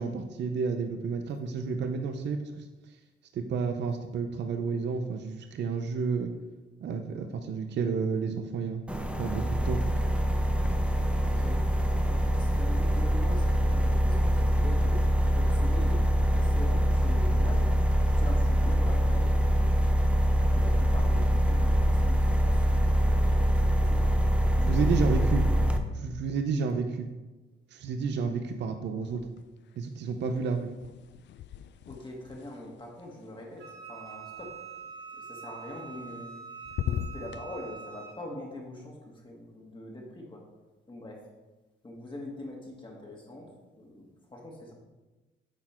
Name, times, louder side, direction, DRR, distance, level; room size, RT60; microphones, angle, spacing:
voice 1, 0.0-2.6 3.3-6.3 6.8-8.8 9.2-9.8 24.7-25.4 26.0-27.1 27.7-29.2 29.8-30.7, right 5 dB, 60° right, 6 dB, 0.7 m, -31 dB
sound 1, 8.9-25.8, equal, 5° right, 0.6 m, -24 dB
voice 2, 11.2-11.6 12.1-17.7 18.2-19.8 20.4-24.0 24.6-25.8 31.9-34.9 35.2-36.4 36.8-40.4 40.9-41.3 41.8-43.5 43.8-44.7, left 1 dB, 25° left, -1 dB, 1.7 m, -43 dB
sound 2, 29.0-29.8 30.0-34.1 35.8-36.4 36.6-37.4, left 10 dB, 65° left, 0.4 m, -39 dB
Wind instrument woodwind instrument, 33.6-38.2, right 6 dB, 80° right, 2.5 m, -44 dB
8.8 x 4.0 x 4.4 m, 1.2 s
cardioid pair, 90°, 20 cm